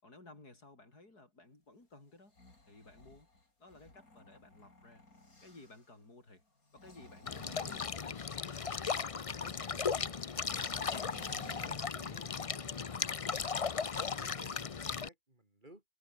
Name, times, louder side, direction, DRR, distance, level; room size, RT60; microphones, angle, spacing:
voice 1, 0.0-2.3 2.7-3.3 3.6-5.0 5.4-6.4 6.7-10.2, left 2 dB, 90° left, 6.8 m, -57 dB
sound 1, 2.1-5.9 6.6-8.7 10.2-12.5, left 2 dB, 70° left, 5.8 m, -54 dB
sound 2, 7.3-15.1, left 5 dB, 40° left, 0.4 m, -37 dB
voice 2, 11.2-13.1 13.8-15.8, right 1 dB, 30° right, 4.6 m, -59 dB
omnidirectional pair, 1.6 m